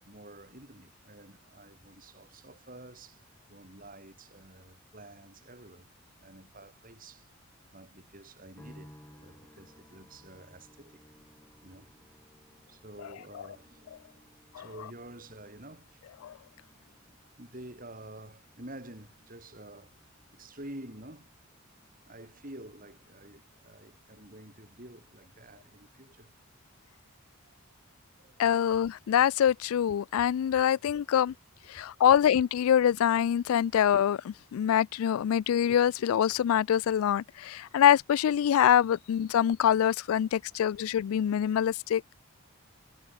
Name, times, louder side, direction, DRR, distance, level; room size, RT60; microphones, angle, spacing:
voice 1, 0.0-5.9 6.2-7.3 7.7-11.0 11.6-11.9 12.7-14.3 14.5-16.1 17.0-20.0 20.3-21.3 22.0-26.3 27.4-27.6 28.1-28.5 29.1-29.2 31.2-31.3 31.7-32.0 40.2-40.6, right 1 dB, 40° right, 7.4 m, -49 dB
sound 1, 8.6-23.8 24.1-24.9, equal, 10° left, 3.2 m, -60 dB
voice 2, 28.4-31.3 31.7-42.1, left 9 dB, 75° left, 0.3 m, -25 dB
head